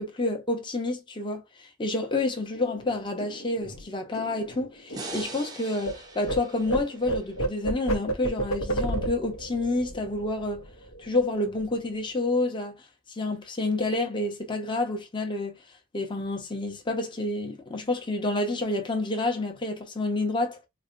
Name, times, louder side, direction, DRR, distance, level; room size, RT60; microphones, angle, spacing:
voice 1, 0.0-10.6 11.0-12.8 13.1-15.5 15.9-20.6, left 2 dB, 25° left, 0.7 m, -29 dB
sound 1, 2.5-5.9 6.2-11.2 11.5-11.7 12.0-12.6, right 2 dB, 80° left, 0.8 m, -32 dB
sound 2, 4.9-8.2, right 3 dB, 20° right, 0.6 m, -42 dB
4.1 x 2.1 x 2.5 m
head